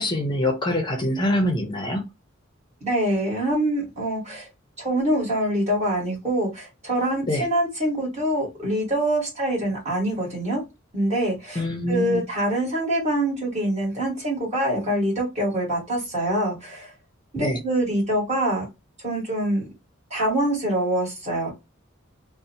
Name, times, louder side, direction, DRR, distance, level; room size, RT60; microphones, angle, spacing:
voice 1, 0.0-2.1 7.3-7.4 11.6-12.2 17.4-17.6, left 1 dB, 20° left, 0.5 m, -24 dB
voice 2, 2.8-4.5 4.8-10.6 10.9-16.9 17.3-18.6 19.0-19.7 20.1-21.5, right 1 dB, 35° right, 1.5 m, -25 dB
2.7 x 2.0 x 2.6 m
head